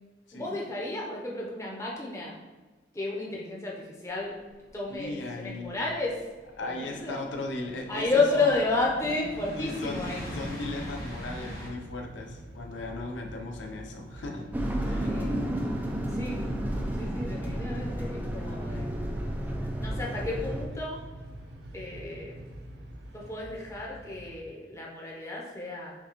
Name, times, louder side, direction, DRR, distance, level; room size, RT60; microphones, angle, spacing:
voice 1, 0.3-2.4 2.9-4.4 4.7-6.1 6.8-7.2 7.9-10.2 15.0-15.7 16.1-16.4 16.9-18.9 19.8-21.0 21.7-22.4 23.1-25.9, left 3 dB, 15° left, -3 dB, 0.7 m, -31 dB
sound 1, 4.6-11.7, equal, 50° left, 1.2 m, -42 dB
voice 2, 4.9-5.8 6.6-8.6 9.0-9.1 9.6-14.5 14.8-15.3, left 2 dB, 85° left, 2 dB, 0.5 m, -37 dB
sound 2, 10.1-24.4, right 1 dB, 65° right, 0.5 m, -45 dB
sound 3, 14.5-20.7, right 1 dB, 10° right, 0.3 m, -31 dB
5.8 x 2.3 x 2.9 m, 1.3 s
head